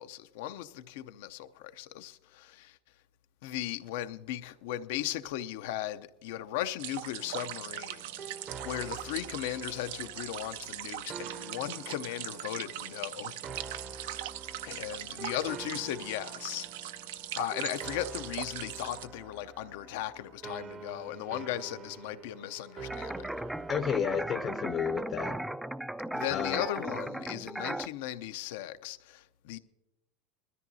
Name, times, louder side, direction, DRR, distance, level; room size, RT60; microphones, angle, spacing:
voice 1, 0.0-2.8 3.4-8.4 8.6-13.4 14.0-14.2 14.6-16.7 17.3-23.3 26.1-29.6, left 13 dB, 75° left, 0.6 m, -37 dB
sound 1, 6.8-19.1, right 12 dB, 80° right, 0.5 m, -41 dB
sound 2, 7.2-25.2, right 5 dB, 35° right, 0.7 m, -47 dB
sound 3, 22.9-27.9, right 1 dB, 5° right, 0.3 m, -36 dB
voice 2, 23.7-25.4 26.3-26.7, left 8 dB, 40° left, 0.7 m, -32 dB
21.0 x 13.5 x 2.7 m
supercardioid pair, 125°, 0 cm